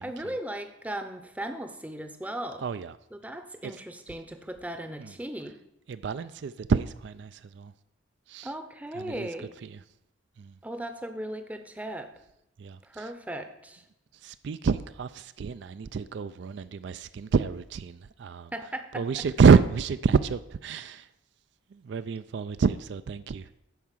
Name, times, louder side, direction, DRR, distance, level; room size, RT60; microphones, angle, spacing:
voice 1, 0.0-2.7 3.1-5.6 8.4-9.5 10.6-12.1 12.8-13.8 18.5-19.3, right 1 dB, 5° right, 0.7 m, -37 dB
voice 2, 2.6-2.9 5.9-7.7 8.3-8.5 9.0-9.3 10.4-10.5 12.6-13.1 14.2-18.5 18.9-21.1 21.7-23.5, right 5 dB, 60° right, 0.3 m, -27 dB
11.0 x 4.7 x 7.3 m
head